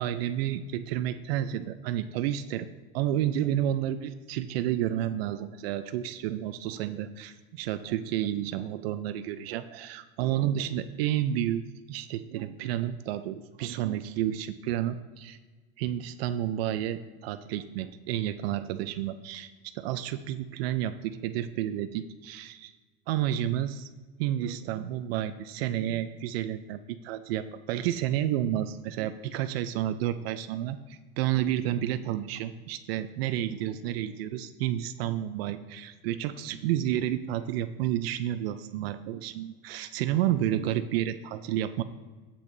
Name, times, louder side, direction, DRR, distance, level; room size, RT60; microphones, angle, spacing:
voice 1, 0.0-2.7 2.9-11.6 11.9-15.4 15.8-22.7 23.1-23.9 24.2-41.8, right 11 dB, 70° right, 10 dB, 0.6 m, -30 dB
12.0 x 8.5 x 2.7 m, 1.3 s
supercardioid pair, 135°, 31 cm